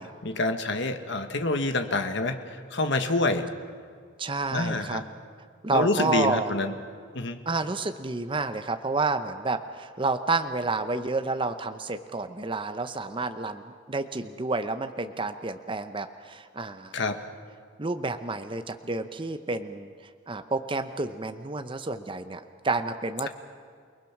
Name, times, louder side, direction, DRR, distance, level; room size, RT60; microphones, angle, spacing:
voice 1, 0.2-3.5 4.5-5.0 5.7-6.7 7.1-7.4 16.9-17.2, left 2 dB, 60° left, 7 dB, 1.5 m, -27 dB
voice 2, 4.2-5.0 5.6-6.5 7.5-16.9 17.8-19.9 20.3-23.3, right 3 dB, 25° right, 8 dB, 0.8 m, -30 dB
29.5 x 20.0 x 6.0 m, 2.1 s
head